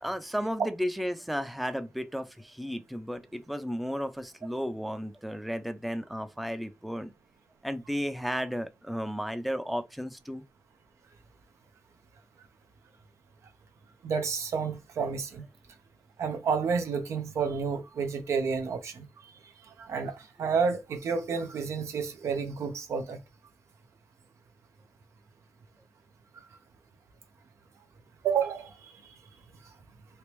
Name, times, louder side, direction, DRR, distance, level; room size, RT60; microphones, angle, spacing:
voice 1, 0.0-7.1 7.6-10.4, equal, ahead, 0.4 m, -33 dB
voice 2, 14.0-15.4 16.2-19.0 19.7-23.2 28.2-28.9, right 5 dB, 85° right, 0.7 m, -30 dB
3.3 x 2.9 x 3.0 m
cardioid pair, 90°, 5 cm